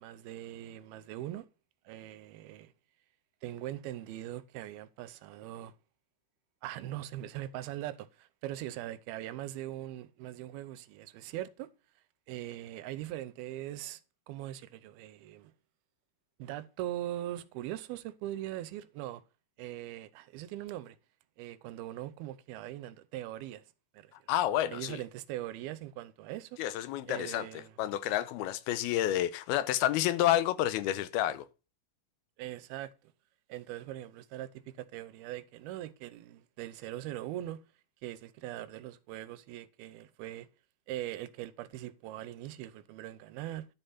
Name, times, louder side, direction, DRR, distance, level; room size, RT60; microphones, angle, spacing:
voice 1, 0.0-1.5 1.9-2.7 3.4-5.7 6.6-11.7 12.3-14.0 14.3-15.5 16.4-19.2 19.6-21.0 21.4-23.6 23.9-24.3 24.7-26.6 27.1-27.7 32.4-32.9 33.5-37.6 38.0-40.5 40.9-43.7, right 13 dB, 85° right, 2.6 m, -41 dB
voice 2, 24.3-25.0 26.6-31.5, left 13 dB, 80° left, 2.6 m, -29 dB
10.5 x 5.5 x 5.6 m
omnidirectional pair, 4.4 m